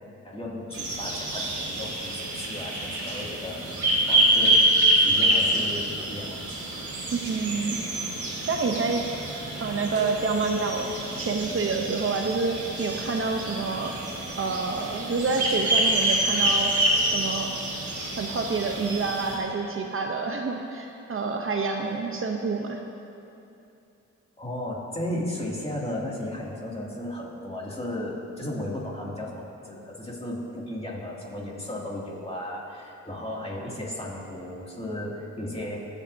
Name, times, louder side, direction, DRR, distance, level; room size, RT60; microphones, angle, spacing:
voice 1, 0.2-3.6 4.1-6.4 24.4-35.8, left 1 dB, 20° left, -4 dB, 2.4 m, -35 dB
sound 1, 0.7-19.4, right 1 dB, 80° right, 2.8 m, -26 dB
voice 2, 7.1-7.8 8.5-9.0 9.6-13.9 14.4-16.7 17.1-17.5 18.2-22.8, right 4 dB, 45° right, 2 dB, 0.8 m, -28 dB
23.5 x 8.1 x 2.7 m, 2.7 s
cardioid pair, 95°, 29 cm